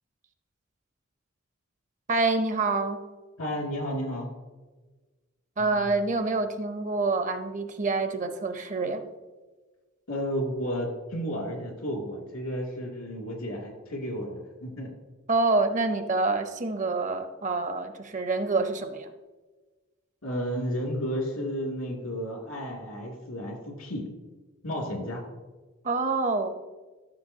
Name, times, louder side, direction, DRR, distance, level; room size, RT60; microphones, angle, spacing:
voice 1, 2.1-3.0 5.6-9.0 15.3-19.1 25.8-26.5, right 3 dB, 35° right, 8 dB, 0.7 m, -27 dB
voice 2, 3.4-4.3 5.6-5.9 10.1-14.9 20.2-24.1 24.6-25.2, equal, 90° left, 0 dB, 2.6 m, -32 dB
13.5 x 6.8 x 2.8 m, 1.2 s
head